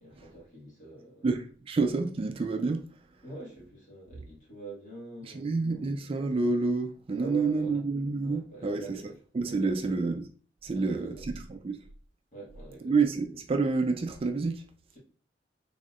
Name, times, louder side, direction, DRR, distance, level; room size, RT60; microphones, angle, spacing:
voice 1, 0.0-1.3 3.2-6.0 7.2-7.8 8.2-9.1 9.4-9.9 10.7-11.2 12.3-12.9 14.9-15.0, right 2 dB, 45° left, 1.7 m, -45 dB
voice 2, 1.2-2.8 5.3-8.8 9.3-10.2 10.6-11.8 12.8-14.6, right 4 dB, 30° right, 0.3 m, -28 dB
4.1 x 3.6 x 2.4 m
head